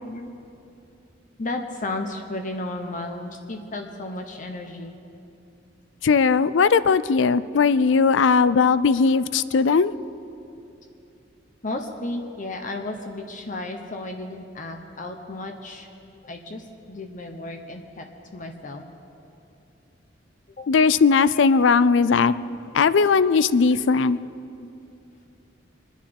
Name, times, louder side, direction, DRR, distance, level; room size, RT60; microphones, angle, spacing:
voice 1, 1.4-5.0 6.8-7.0 8.5-8.6 11.6-15.9 16.2-18.0 18.3-18.8 20.6-20.7 21.3-21.4 22.1-22.7 24.4-24.7, left 2 dB, 45° left, 4 dB, 1.0 m, -34 dB
voice 2, 6.0-9.9 20.7-22.3 22.7-24.2, left 5 dB, 75° left, 17 dB, 0.4 m, -18 dB
25.5 x 10.0 x 5.3 m, 2.7 s
head